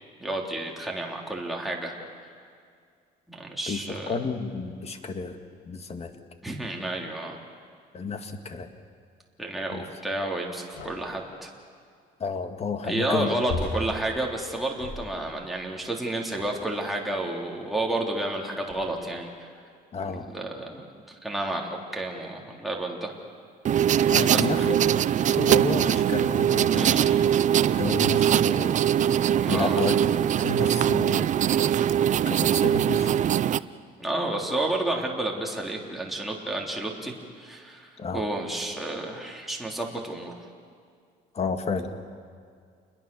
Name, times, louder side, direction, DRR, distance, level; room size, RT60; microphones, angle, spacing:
voice 1, 0.2-1.9 3.3-4.2 6.4-7.4 9.4-11.5 12.8-19.5 20.1-23.1 24.1-24.7 26.7-27.2 29.4-29.8 34.0-40.3, right 1 dB, ahead, -2 dB, 3.5 m, -31 dB
voice 2, 4.1-5.4 5.7-6.2 7.9-8.7 9.7-9.8 12.2-13.4 19.9-20.3 24.1-24.9 25.3-27.2 27.7-28.8 29.5-30.0 30.4-31.3 32.3-33.2 38.0-38.2 41.3-41.9, left 4 dB, 40° left, 7 dB, 2.1 m, -31 dB
sound 1, 10.7-11.2 13.5-15.4 16.3-16.8 17.7-17.8 18.7-19.1, left 2 dB, 80° left, 6.8 m, -37 dB
sound 2, 23.7-33.6, right 10 dB, 45° right, 0.6 m, -22 dB
29.0 x 21.5 x 7.0 m, 2.2 s
cardioid pair, 110°, 17 cm